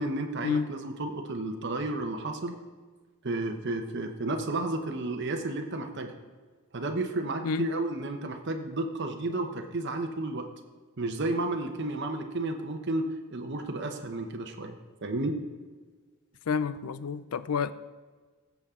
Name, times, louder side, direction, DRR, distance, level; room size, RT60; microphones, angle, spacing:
voice 1, 0.0-2.6 3.2-6.1 6.7-10.5 11.0-15.3, right 2 dB, 50° right, 4 dB, 0.9 m, -32 dB
voice 2, 16.5-17.7, left 5 dB, 75° left, 15 dB, 0.5 m, -29 dB
15.5 x 7.3 x 3.7 m, 1.4 s
head